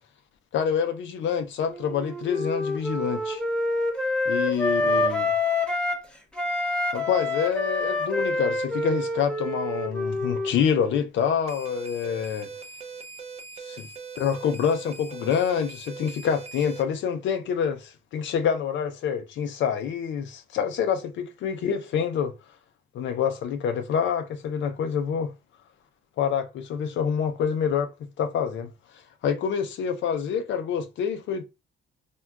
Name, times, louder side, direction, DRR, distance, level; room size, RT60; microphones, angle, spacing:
voice 1, 0.5-3.4 4.3-5.3 6.9-12.5 13.7-13.9 14.2-22.3 22.9-25.3 26.2-27.9 28.2-31.4, left 7 dB, 70° left, 0.5 m, -27 dB
Wind instrument woodwind instrument, 1.7-6.1 6.4-10.9, left 2 dB, 5° left, 0.7 m, -27 dB
sound 1, 11.5-16.8, right 5 dB, 30° right, 0.5 m, -41 dB
3.5 x 2.2 x 2.3 m
cardioid pair, 90°, 20 cm